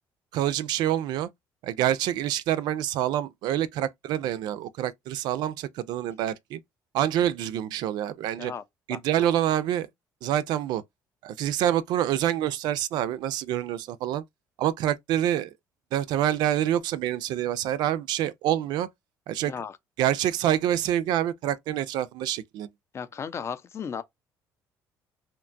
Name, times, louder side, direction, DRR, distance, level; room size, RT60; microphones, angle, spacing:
voice 1, 0.3-1.3 1.6-6.6 6.9-8.5 8.9-9.9 10.2-10.8 11.2-14.2 14.6-15.5 15.9-18.9 19.3-19.5 20.0-22.7, right 11 dB, 75° right, 0.3 m, -26 dB
voice 2, 8.9-9.3 19.4-19.7 22.9-24.0, left 7 dB, 40° left, 0.4 m, -35 dB
2.8 x 2.2 x 2.5 m
cardioid pair, 105°, 7 cm